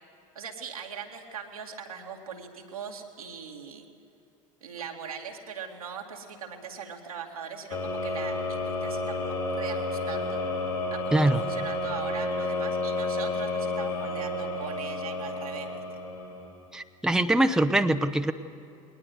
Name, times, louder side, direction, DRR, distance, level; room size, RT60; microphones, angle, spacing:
voice 1, 0.3-3.8 4.6-10.4 10.9-15.8, right 6 dB, 85° right, 1 dB, 2.2 m, -40 dB
sound 1, 7.7-16.6, left 2 dB, 90° left, 4.4 m, -31 dB
voice 2, 11.1-11.4 16.7-18.3, right 1 dB, 5° right, 8 dB, 0.9 m, -23 dB
20.5 x 20.0 x 8.0 m, 2.8 s
figure-of-eight pair, 70°, 18 cm